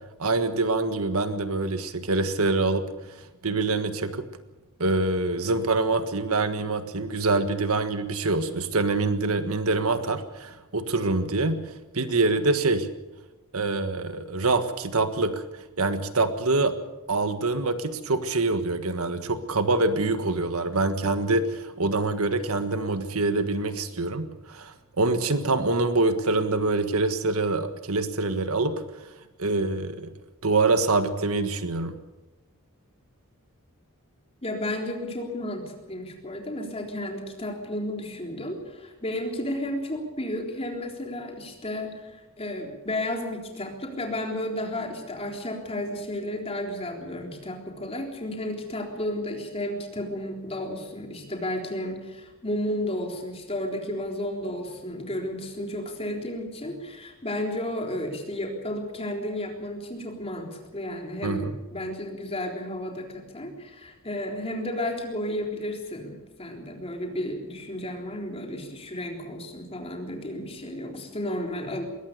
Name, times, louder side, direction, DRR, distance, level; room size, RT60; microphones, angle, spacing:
voice 1, 0.2-2.8 3.4-4.2 4.8-11.6 11.9-12.9 13.5-15.4 15.8-16.7 17.1-28.8 29.4-30.1 30.4-31.9 61.2-61.6, right 3 dB, 75° right, 9 dB, 1.6 m, -25 dB
voice 2, 34.4-71.8, left 1 dB, 25° left, 2 dB, 3.8 m, -33 dB
22.0 x 18.5 x 6.8 m, 1.1 s
head